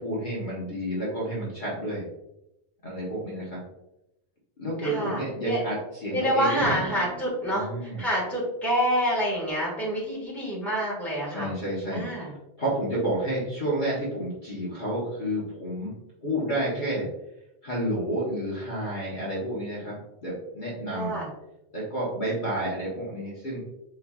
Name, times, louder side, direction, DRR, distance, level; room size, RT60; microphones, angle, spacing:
voice 1, 0.0-2.1 2.8-3.6 4.6-6.7 7.5-8.0 11.3-12.3 12.6-17.0 17.6-21.2 21.7-23.6, right 1 dB, 45° left, -6 dB, 1.0 m, -30 dB
voice 2, 4.8-5.6 6.1-11.5 11.9-12.3 20.9-21.3, equal, ahead, -6 dB, 1.4 m, -27 dB
Drum, 6.6-8.6, equal, 90° left, 0.9 m, -40 dB
4.0 x 3.1 x 2.3 m, 0.88 s
omnidirectional pair, 1.2 m